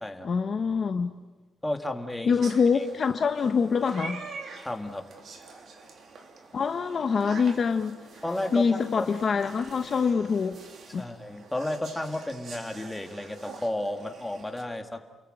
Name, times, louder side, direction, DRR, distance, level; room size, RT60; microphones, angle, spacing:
voice 1, 0.2-1.1 2.2-4.2 6.5-8.0 8.5-10.6 10.9-11.1, left 5 dB, 35° left, 1.0 m, -25 dB
voice 2, 1.6-2.3 2.7-2.8 4.6-5.0 8.2-9.1 11.0-15.0, left 1 dB, 5° left, 1.9 m, -32 dB
sound 1, 2.4-14.6, right 4 dB, 45° right, 3.4 m, -46 dB
30.0 x 21.5 x 9.0 m
cardioid pair, 180°, 0 cm